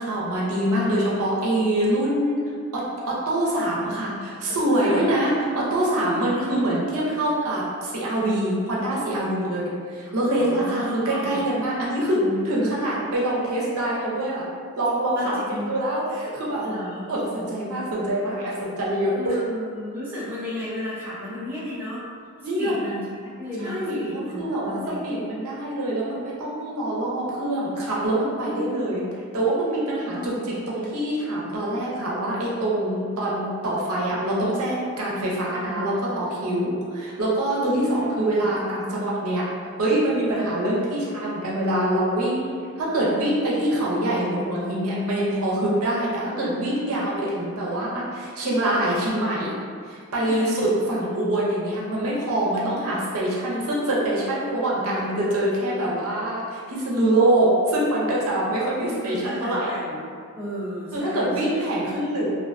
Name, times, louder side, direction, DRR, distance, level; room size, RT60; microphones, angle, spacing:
voice 1, 0.0-2.4 2.7-14.5 14.8-16.7 17.1-19.4 22.4-22.8 23.6-29.0 29.3-39.4 39.8-49.6 49.9-59.7 60.9-62.3, right 1 dB, 75° right, -5 dB, 0.6 m, -25 dB
voice 2, 4.5-6.6 10.1-11.4 15.2-15.7 16.6-17.0 19.2-22.1 22.6-25.0 28.5-29.0 29.9-30.5 35.4-35.9 37.6-38.5 40.3-40.4 46.9-47.0 50.3-50.4 59.0-60.0 60.4-61.5 61.9-62.1, left 1 dB, 10° right, -9 dB, 0.4 m, -34 dB
2.5 x 2.2 x 2.4 m, 2.1 s
head